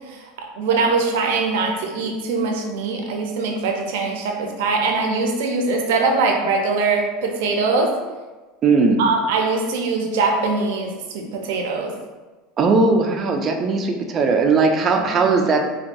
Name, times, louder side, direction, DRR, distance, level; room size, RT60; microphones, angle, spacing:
voice 1, 0.6-7.9 9.0-11.9 15.0-15.3, right 4 dB, 80° right, 2 dB, 0.6 m, -22 dB
voice 2, 8.6-9.0 12.6-15.6, right 4 dB, 30° right, 3 dB, 0.4 m, -18 dB
4.5 x 2.3 x 2.6 m, 1.3 s
supercardioid pair, 140°, 0 cm